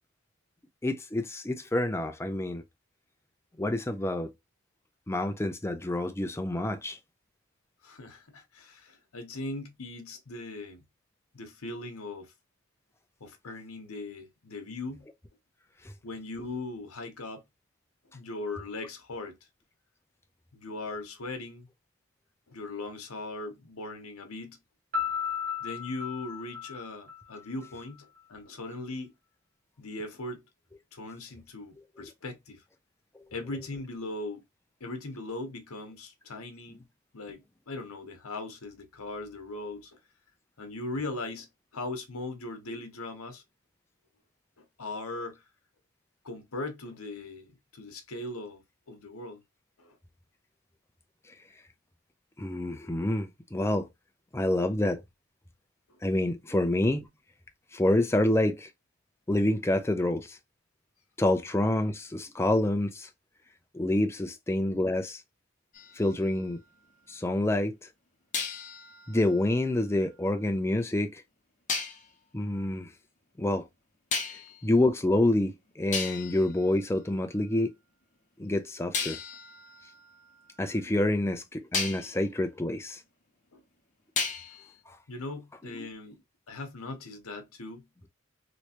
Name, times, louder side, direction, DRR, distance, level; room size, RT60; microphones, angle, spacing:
voice 1, 0.8-2.6 3.6-4.3 5.1-7.0 32.0-32.1 52.4-53.9 54.3-55.0 56.0-57.1 57.7-58.7 59.3-60.4 61.2-63.1 63.7-65.2 66.0-66.6 67.1-67.7 69.1-71.2 72.3-72.9 73.4-73.6 74.6-77.7 78.4-79.2 80.6-83.0, left 1 dB, 10° left, 0.4 m, -27 dB
voice 2, 7.8-10.8 11.3-12.3 13.2-15.1 16.0-17.4 18.1-19.4 20.5-21.7 22.5-24.6 25.6-29.1 29.8-30.4 30.9-32.6 33.3-34.4 34.8-36.8 37.1-40.0 40.6-43.4 44.6-45.4 46.2-49.4 49.8-50.0 55.9-56.0 74.3-74.4 83.5-83.6 85.1-87.9, left 2 dB, 75° left, 1.0 m, -39 dB
Piano, 24.9-27.7, left 7 dB, 40° right, 1.4 m, -34 dB
sound 1, 65.7-67.2 68.3-70.5 71.7-72.1 74.1-74.6 75.4-75.5 75.9-77.5 78.9-81.1 81.7-82.2 84.2-84.7, left 5 dB, 35° left, 0.9 m, -36 dB
3.2 x 3.0 x 2.8 m
head